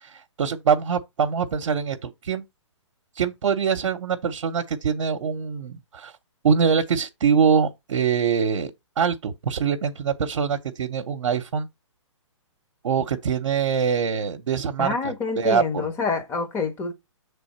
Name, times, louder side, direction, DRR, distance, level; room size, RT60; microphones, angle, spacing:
voice 1, 0.0-2.4 3.2-6.1 6.4-8.7 9.0-11.7 12.8-14.9 15.4-15.8, right 6 dB, 70° right, 0.8 m, -23 dB
voice 2, 14.8-16.9, left 4 dB, 15° left, 1.0 m, -27 dB
6.8 x 3.5 x 4.1 m
hypercardioid pair, 145°, 16 cm